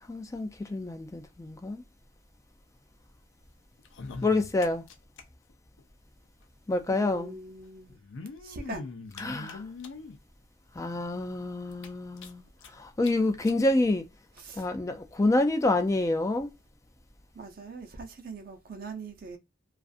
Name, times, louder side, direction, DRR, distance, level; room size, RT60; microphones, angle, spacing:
voice 1, 0.1-1.8 4.2-4.8 6.7-7.4 9.2-9.6 10.8-12.4 12.7-14.0 14.6-16.5, left 2 dB, 15° left, 0.3 m, -27 dB
sound 1, 3.8-5.2 5.5-5.6 5.8-5.9 6.9-7.0 7.9-10.2 10.8-10.9 11.2-11.3 11.7-12.7 13.0-13.1 13.4-13.6 14.4-14.5, left 4 dB, 90° left, 0.5 m, -42 dB
voice 2, 6.9-8.0 8.4-8.9 14.4-14.7 17.3-19.4, right 3 dB, 50° right, 0.6 m, -42 dB
2.5 x 2.4 x 2.3 m
head